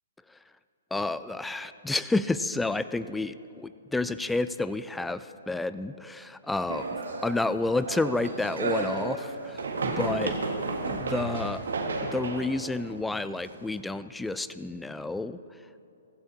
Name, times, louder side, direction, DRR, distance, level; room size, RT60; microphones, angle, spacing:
voice 1, 0.9-10.4 10.9-11.7 12.0-15.4, left 2 dB, 5° left, 14 dB, 0.3 m, -30 dB
sound 1, 6.7-13.8, right 3 dB, 75° right, 1.5 m, -33 dB
15.5 x 15.5 x 2.8 m, 2.8 s
hypercardioid pair, 135°, 0 cm